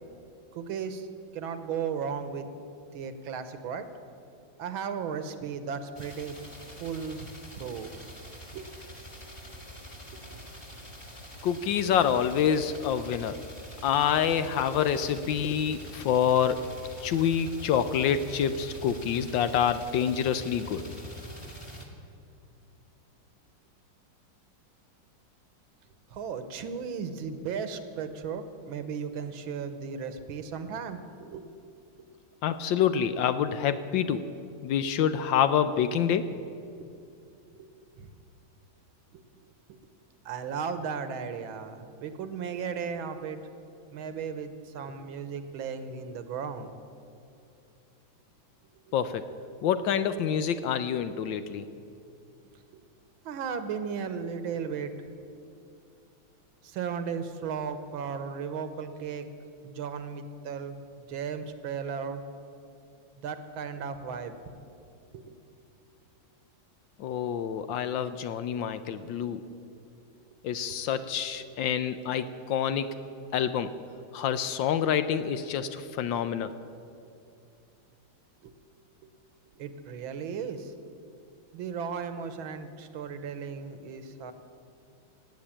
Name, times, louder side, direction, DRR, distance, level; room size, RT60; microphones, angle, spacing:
voice 1, 0.5-1.1 1.3-2.5 2.9-3.9 4.6-6.4 6.8-7.2 7.6-8.7 9.5-9.6 10.1-10.4 26.1-31.5 32.0-32.1 36.8-36.9 37.5-38.1 39.1-39.2 39.7-39.8 40.2-43.4 43.9-46.7 48.9-49.0 52.7-52.8 53.2-54.9 56.6-59.3 59.6-62.2 63.2-64.4 65.1-65.4 70.6-70.8 74.6-74.7 75.1-75.3 77.0-77.1 78.4-78.5 79.0-79.1 79.5-80.7 81.5-84.3, right 6 dB, 75° right, 10 dB, 1.7 m, -36 dB
sound 1, 5.9-21.8, equal, 15° left, 1.7 m, -45 dB
voice 2, 11.4-13.4 13.8-16.6 17.0-20.8 32.4-34.2 34.6-36.3 48.9-49.2 49.6-51.7 67.0-69.4 70.4-72.9 73.3-73.7 74.1-76.5, left 8 dB, 70° left, 11 dB, 1.2 m, -27 dB
17.5 x 8.3 x 8.8 m, 2.6 s
omnidirectional pair, 2.3 m